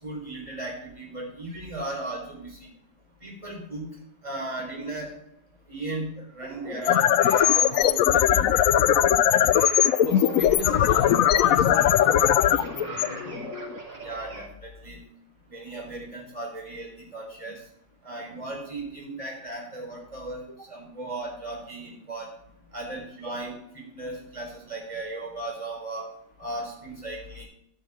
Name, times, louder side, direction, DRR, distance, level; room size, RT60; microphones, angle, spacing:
voice 1, 0.0-2.6 3.2-3.9 4.2-5.1 5.7-7.1 7.3-8.4 14.0-15.0 15.5-17.6 18.0-20.4 20.7-22.3 22.7-26.1 26.4-27.4, right 2 dB, 15° right, 4.1 m, -36 dB
sound 1, 6.4-14.4, right 3 dB, 80° right, 4.1 m, -41 dB
sound 2, 6.7-13.8, left 11 dB, 75° left, 0.7 m, -20 dB
voice 2, 9.7-13.6 17.5-17.6 22.9-23.0, left 3 dB, 40° left, 0.4 m, -37 dB
13.5 x 5.8 x 4.8 m
omnidirectional pair, 1.9 m